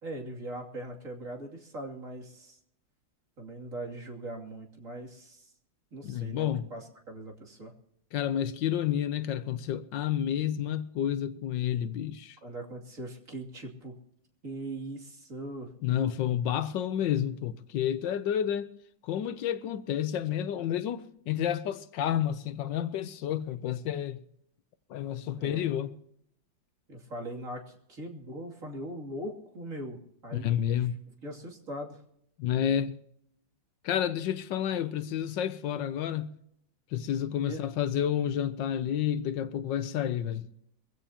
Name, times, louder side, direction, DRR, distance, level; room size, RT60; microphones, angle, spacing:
voice 1, 0.0-2.6 3.4-5.5 5.9-7.7 12.4-14.0 14.4-15.7 25.4-25.6 26.9-30.5 31.2-32.0 37.4-37.6, right 1 dB, 45° right, 3.1 m, -40 dB
voice 2, 6.0-6.7 8.1-12.4 15.8-18.7 19.0-24.2 24.9-25.9 30.3-31.0 32.4-32.9 33.8-36.3 36.9-40.5, left 10 dB, 75° left, 1.4 m, -30 dB
22.5 x 15.5 x 2.9 m
omnidirectional pair, 2.0 m